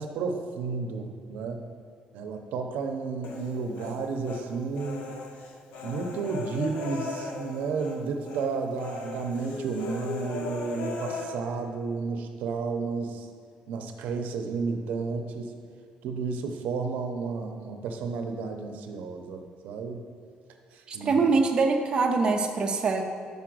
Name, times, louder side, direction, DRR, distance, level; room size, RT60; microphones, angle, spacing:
voice 1, 0.0-1.7 2.1-5.1 5.8-13.3 13.7-15.5 16.0-20.1 20.7-21.2, right 4 dB, 85° right, 5 dB, 0.6 m, -32 dB
Human voice, 3.2-4.4 4.8-8.0 8.2-8.5 8.8-11.2, left 3 dB, 80° left, 0.9 m, -37 dB
voice 2, 20.9-23.0, right 4 dB, 35° right, 3 dB, 0.5 m, -24 dB
5.4 x 4.8 x 6.0 m, 2.2 s
cardioid pair, 155°, 3 cm